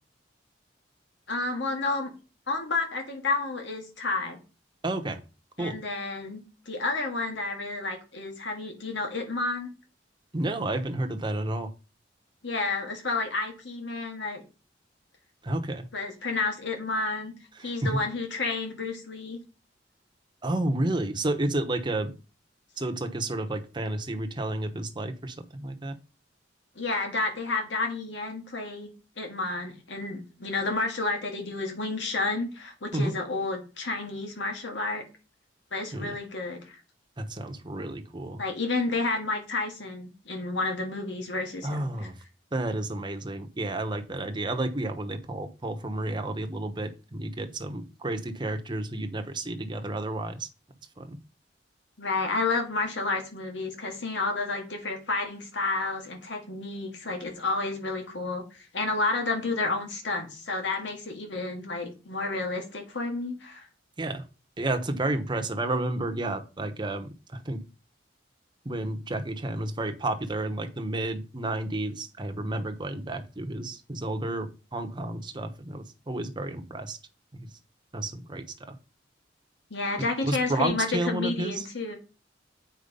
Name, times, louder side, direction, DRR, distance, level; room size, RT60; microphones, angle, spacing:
voice 1, 1.3-2.1 2.5-4.4 5.6-9.7 12.4-14.4 15.9-17.3 17.6-19.4 26.8-28.9 29.2-35.0 35.7-36.8 38.4-42.1 52.0-63.7 79.7-82.0, left 3 dB, 70° left, 3 dB, 1.9 m, -30 dB
voice 2, 4.8-5.2 5.6-5.8 10.3-11.7 15.4-15.8 17.6-18.0 20.4-22.1 22.8-25.9 32.9-33.1 35.9-36.1 37.2-38.4 41.6-42.2 42.5-50.5 51.0-51.2 64.0-64.3 64.6-67.7 68.6-77.0 77.3-77.5 77.9-78.8 80.2-81.6, right 2 dB, 25° right, 6 dB, 0.9 m, -31 dB
8.1 x 4.6 x 5.4 m, 0.33 s
head